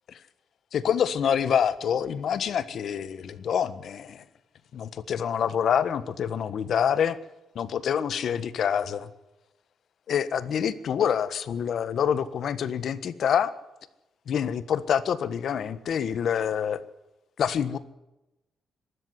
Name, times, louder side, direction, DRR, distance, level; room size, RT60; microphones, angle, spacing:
voice 1, 0.7-4.2 4.7-7.2 7.5-9.1 10.1-13.5 14.3-16.8 17.4-17.8, left 8 dB, 65° left, 14 dB, 1.4 m, -26 dB
23.0 x 13.0 x 9.6 m, 0.95 s
cardioid pair, 120°, 0 cm